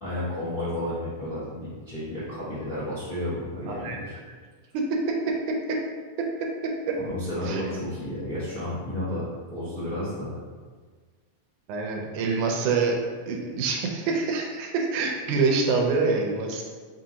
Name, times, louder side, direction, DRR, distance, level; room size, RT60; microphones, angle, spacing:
voice 1, 0.0-4.2 7.0-9.2 9.5-10.4, left 1 dB, 40° left, -15 dB, 1.1 m, -32 dB
voice 2, 3.7-4.0 4.7-5.1 5.5-5.8 6.2-6.3 6.9-7.0 7.5-7.6 11.7-13.0 13.3-16.6, right 4 dB, 85° right, 1 dB, 2.1 m, -26 dB
5.3 x 2.5 x 2.8 m, 1.5 s
omnidirectional pair, 3.5 m